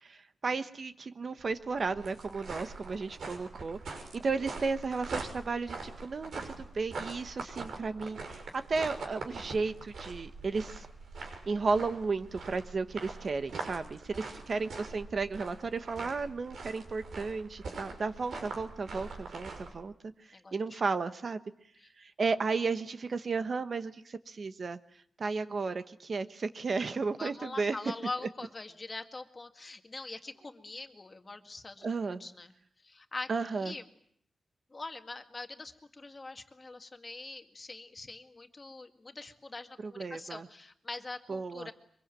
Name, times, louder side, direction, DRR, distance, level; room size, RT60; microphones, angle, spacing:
voice 1, 0.0-6.3 6.6-10.9 11.5-19.9 20.5-21.4 22.0-24.8 25.2-27.8 31.8-32.2 33.3-33.7 39.8-40.5 41.3-41.7, right 4 dB, 45° right, 11 dB, 1.1 m, -34 dB
sound 1, 1.4-19.7, right 3 dB, 75° right, 6.2 m, -43 dB
voice 2, 14.1-14.4 20.3-20.8 21.8-21.9 27.2-31.9 32.2-32.5 32.8-33.3 33.5-33.8 34.7-41.7, left 3 dB, 30° left, 6 dB, 1.9 m, -43 dB
24.5 x 23.0 x 9.1 m, 0.67 s
wide cardioid pair, 135°, 0 cm